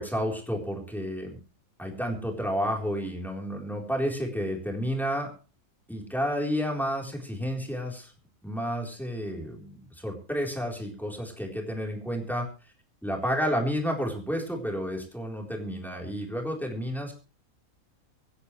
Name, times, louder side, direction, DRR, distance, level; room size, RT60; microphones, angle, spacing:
voice 1, 0.0-1.4 1.8-5.3 5.9-8.1 8.4-12.5 13.0-17.1, equal, ahead, 0 dB, 3.9 m, -31 dB
25.5 x 10.0 x 3.3 m, 0.37 s
omnidirectional pair, 1.5 m